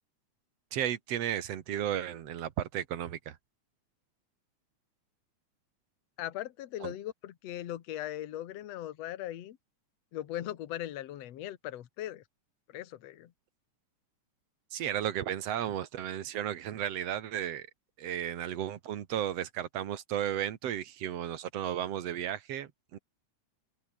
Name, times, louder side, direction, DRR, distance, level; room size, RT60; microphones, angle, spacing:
voice 1, 0.7-3.4 6.8-6.9 14.7-17.7 18.0-23.0, right 10 dB, 60° right, 2.3 m, -34 dB
voice 2, 6.2-9.6 10.1-12.2 12.7-13.3, left 13 dB, 60° left, 2.4 m, -39 dB
omnidirectional pair, 3.5 m